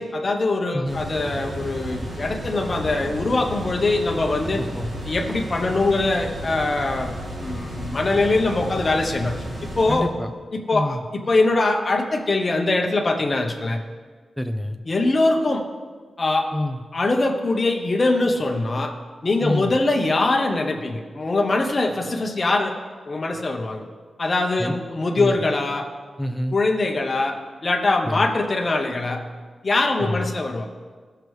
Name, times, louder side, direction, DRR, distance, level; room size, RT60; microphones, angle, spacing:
voice 1, 0.0-4.6 5.1-7.1 7.4-9.4 9.8-10.1 10.5-11.0 11.3-13.8 14.9-15.6 16.2-16.5 16.9-18.9 19.2-22.7 23.1-23.8 24.2-25.8 26.5-29.3 29.6-30.7, left 2 dB, 30° left, 2 dB, 0.9 m, -22 dB
voice 2, 0.7-1.0 4.6-4.9 9.9-10.3 10.7-11.0 14.4-14.8 16.5-16.8 19.4-19.7 24.6-24.8 25.2-25.4 26.2-26.5 28.1-28.3 30.0-30.3, left 1 dB, ahead, 6 dB, 0.5 m, -27 dB
sound 1, 0.8-10.0, equal, 45° right, 2.9 m, -33 dB
15.0 x 6.7 x 3.2 m, 1.5 s
wide cardioid pair, 170°, 0 cm